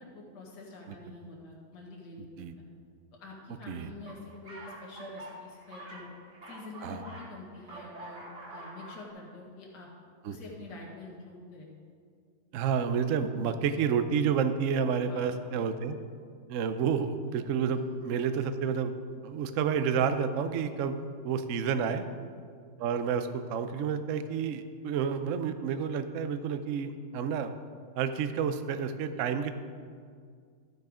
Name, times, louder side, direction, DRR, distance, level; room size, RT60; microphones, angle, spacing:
voice 1, 0.0-2.5 3.1-6.1 6.5-9.9 10.3-11.7 15.0-15.6 21.9-22.3, left 2 dB, 60° left, -3 dB, 2.3 m, -47 dB
sound 1, 4.0-7.3 7.6-9.1, right 1 dB, 55° right, 2.6 m, -45 dB
voice 2, 12.5-16.0 16.5-19.0 19.2-22.0 22.8-27.5 28.0-29.5, right 7 dB, 90° right, 9 dB, 0.6 m, -30 dB
14.0 x 6.7 x 5.0 m, 2.1 s
omnidirectional pair, 2.1 m